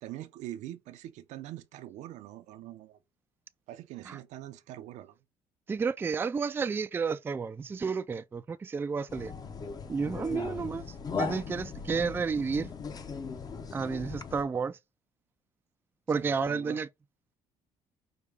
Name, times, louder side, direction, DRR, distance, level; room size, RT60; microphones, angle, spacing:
voice 1, 0.0-3.0 3.7-5.2 16.1-16.8, right 14 dB, 80° right, 0.6 m, -43 dB
voice 2, 5.7-9.3 9.9-12.7 13.7-14.8 16.1-16.9, right 5 dB, 20° right, 0.3 m, -31 dB
sound 1, 9.1-14.4, left 5 dB, 35° left, 0.7 m, -38 dB
5.0 x 2.3 x 3.3 m
cardioid pair, 110°, 12 cm